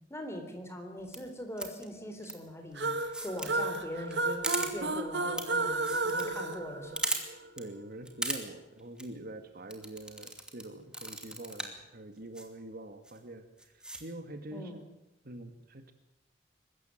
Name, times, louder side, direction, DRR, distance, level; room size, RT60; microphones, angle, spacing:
voice 1, 0.1-7.1 14.5-14.7, left 1 dB, 15° left, 5 dB, 3.8 m, -42 dB
sound 1, 1.0-1.2 1.6-1.8 2.2-2.3 3.0-3.5 3.7-3.8 4.1-4.2 4.4-4.7 5.4-5.5 5.7-6.2 6.5-6.6 7.0-7.2 7.6-7.7 8.1-8.4 8.8-9.0 9.7-10.6 10.9-11.8 12.4-12.5 13.0-13.2 13.6-14.0, right 1 dB, 5° right, 2.7 m, -35 dB
sound 2, 2.8-7.5, right 2 dB, 70° right, 1.9 m, -33 dB
voice 2, 7.6-14.8 15.2-15.9, right 1 dB, 55° right, 8 dB, 2.0 m, -45 dB
23.0 x 14.0 x 9.3 m, 0.89 s
head